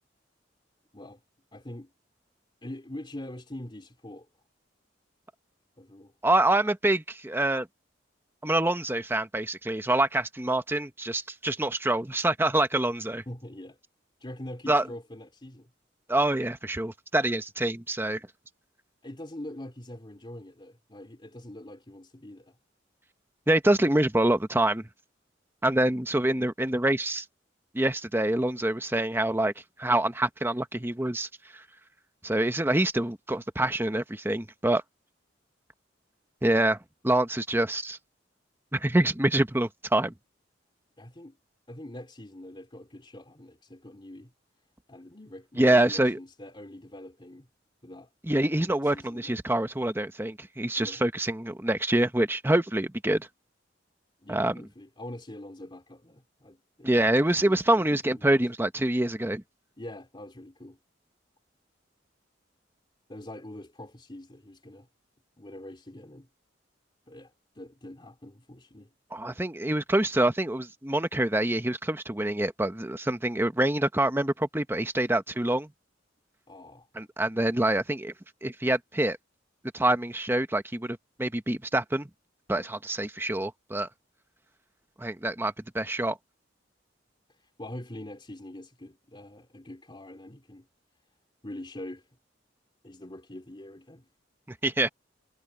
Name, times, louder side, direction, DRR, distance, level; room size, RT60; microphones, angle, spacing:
voice 1, 1.5-1.9 2.6-4.3 5.8-6.1 13.3-13.8 14.2-15.7 19.0-22.6 41.0-41.4 41.7-44.3 44.9-47.5 47.8-48.1 48.7-49.4 50.8-51.0 54.2-57.8 58.1-58.4 59.8-60.8 63.1-64.9 65.4-66.3 67.1-68.9 76.5-76.9 87.6-90.7 91.4-92.0 92.8-94.1, left 1 dB, 25° left, 2.9 m, -44 dB
voice 2, 6.2-7.7 8.4-13.2 14.7-14.8 16.1-18.2 23.5-24.9 25.6-27.2 27.7-29.5 29.8-31.6 32.2-34.8 36.4-38.0 38.7-40.1 45.6-46.2 48.2-53.3 54.3-54.7 56.8-59.4 69.1-75.7 76.9-78.1 78.4-79.2 79.7-82.1 82.5-83.9 85.0-86.2 94.5-94.9, right 1 dB, 10° right, 1.0 m, -26 dB
head